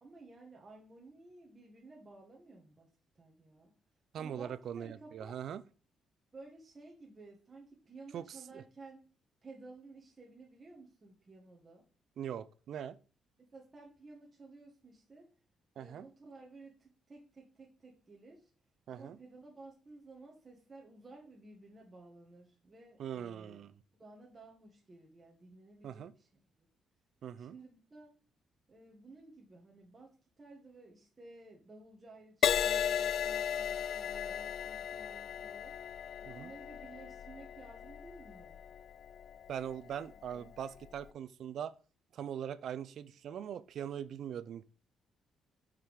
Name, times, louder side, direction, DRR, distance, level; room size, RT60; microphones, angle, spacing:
voice 1, 0.0-3.7 4.2-5.4 6.3-9.0 9.4-11.8 13.4-15.3 15.8-18.5 18.9-23.6 24.0-26.3 26.6-26.7 27.4-28.1 28.7-35.8 36.2-38.6 40.1-40.5, right 3 dB, 30° right, 0 dB, 1.6 m, -55 dB
voice 2, 4.1-5.6 8.1-8.6 12.2-13.0 15.8-16.1 18.9-19.2 23.0-23.7 25.8-26.1 27.2-27.6 36.3-36.5 39.5-41.7 42.1-44.6, right 9 dB, 70° right, 15 dB, 0.4 m, -41 dB
Crash cymbal, 32.4-40.1 40.7-41.0, left 9 dB, 65° left, 0.3 m, -36 dB
5.8 x 4.7 x 5.0 m, 0.40 s
cardioid pair, 90°, 0 cm